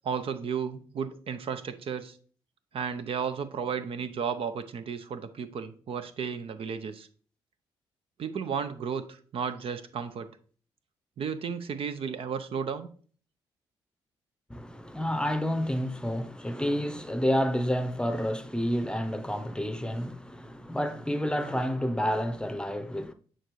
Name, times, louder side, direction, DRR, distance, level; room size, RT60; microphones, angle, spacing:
voice 1, 0.0-2.2 2.7-7.1 8.2-10.3 11.2-12.9, right 6 dB, 60° right, 0.7 m, -33 dB
voice 2, 14.5-23.1, equal, 10° left, 0.7 m, -29 dB
9.0 x 3.8 x 3.2 m
supercardioid pair, 55°, 11 cm